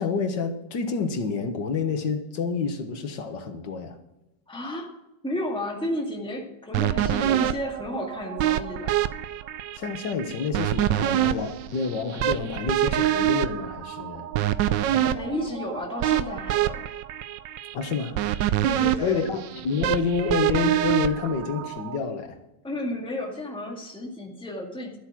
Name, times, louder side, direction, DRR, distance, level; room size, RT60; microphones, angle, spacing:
voice 1, 0.0-4.0 9.8-14.3 17.7-19.4 19.6-22.4, left 5 dB, 75° left, 7 dB, 2.0 m, -28 dB
voice 2, 4.5-4.9 5.2-9.0 14.9-16.9 18.6-19.2 22.6-25.0, left 1 dB, 5° left, 0 dB, 1.9 m, -32 dB
sound 1, 6.7-22.0, right 12 dB, 80° right, 1.3 m, -26 dB
13.0 x 8.2 x 6.0 m, 0.96 s
omnidirectional pair, 1.9 m